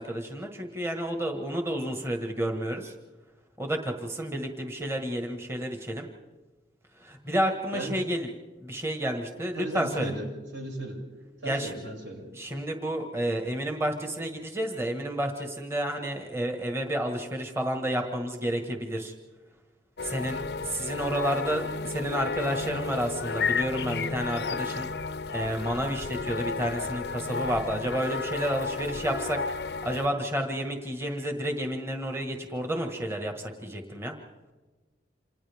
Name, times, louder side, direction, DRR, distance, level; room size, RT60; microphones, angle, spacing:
voice 1, 0.0-2.9 3.6-6.1 7.0-8.3 8.6-10.1 11.4-11.7 12.3-19.1 20.0-24.9 25.3-29.4 29.8-34.2, right 1 dB, 15° right, 3 dB, 1.6 m, -30 dB
voice 2, 7.7-8.1 9.5-11.0 11.4-12.3, right 2 dB, 90° right, -1 dB, 6.8 m, -36 dB
sound 1, 20.0-30.1, left 4 dB, 60° left, 0.5 m, -32 dB
29.0 x 27.0 x 3.6 m, 1.3 s
head